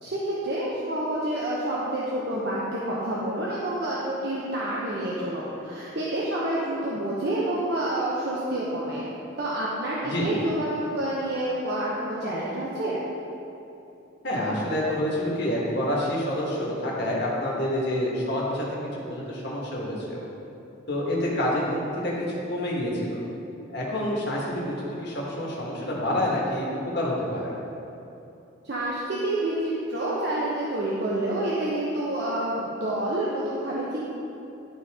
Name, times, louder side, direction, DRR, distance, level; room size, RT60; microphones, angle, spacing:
voice 1, 0.0-9.1 9.4-13.0 28.6-34.0, right 1 dB, 55° right, -6 dB, 0.8 m, -28 dB
voice 2, 10.0-10.4 14.2-18.6 18.9-20.3 20.9-23.2 23.7-24.7 25.0-26.7 26.9-27.5, left 1 dB, 55° left, -4 dB, 1.5 m, -27 dB
11.5 x 4.0 x 3.6 m, 2.8 s
head